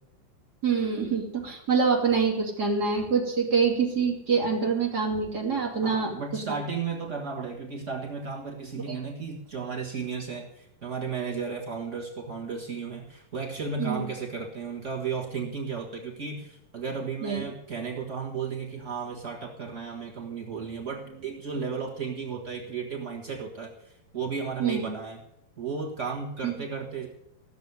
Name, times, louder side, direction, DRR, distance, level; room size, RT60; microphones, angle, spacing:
voice 1, 0.6-6.4 8.9-9.0 13.8-14.0 17.2-17.4 24.6-24.9 26.4-26.6, right 5 dB, 30° right, -1 dB, 2.6 m, -26 dB
voice 2, 5.8-25.2 25.6-27.1, right 5 dB, 85° right, -1 dB, 0.6 m, -34 dB
15.5 x 7.0 x 9.3 m, 0.81 s
omnidirectional pair, 4.1 m